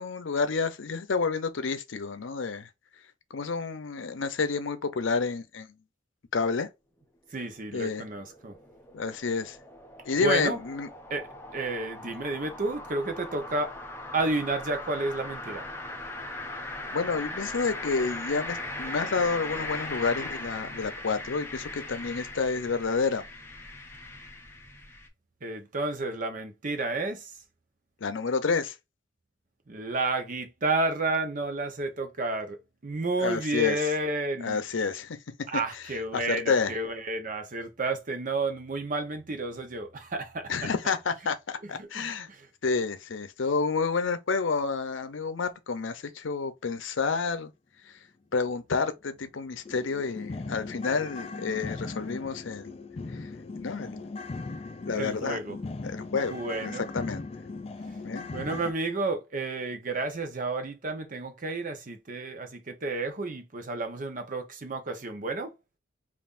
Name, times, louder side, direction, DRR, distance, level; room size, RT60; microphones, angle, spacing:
voice 1, 0.0-2.7 3.3-5.7 6.3-6.7 7.7-8.0 8.9-9.6 10.1-10.9 16.9-23.2 28.0-28.7 33.2-33.8 34.4-35.2 36.1-36.7 40.5-42.3 42.6-47.5 48.3-52.8 53.2-53.3 53.6-54.1 54.9-55.4 55.8-56.3 56.6-57.3 58.0-58.3, left 4 dB, 85° left, 0.6 m, -29 dB
voice 2, 7.3-8.6 10.1-10.6 11.1-11.3 11.5-13.8 14.1-15.7 25.4-27.4 29.7-34.6 35.5-40.9 41.6-42.5 54.9-55.6 56.3-56.9 57.9-58.0 58.3-65.5, right 2 dB, 45° right, 0.8 m, -31 dB
sound 1, 7.5-25.1, left 1 dB, 10° left, 0.7 m, -39 dB
sound 2, 49.6-58.7, left 3 dB, 30° left, 0.3 m, -38 dB
5.4 x 2.5 x 2.5 m
head